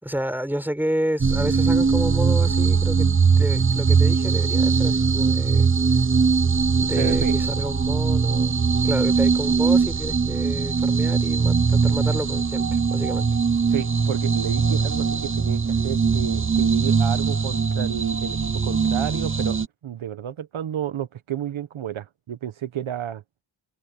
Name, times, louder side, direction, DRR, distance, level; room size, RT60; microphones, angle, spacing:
voice 1, 0.0-3.1 3.4-5.7 6.8-8.5 8.8-13.2, equal, 5° right, 4.7 m, -30 dB
sound 1, 1.2-19.7, right 5 dB, 25° right, 0.8 m, -21 dB
voice 2, 7.0-7.3 13.7-19.6 19.8-23.2, right 10 dB, 85° right, 1.2 m, -31 dB
wide cardioid pair, 105°, 47 cm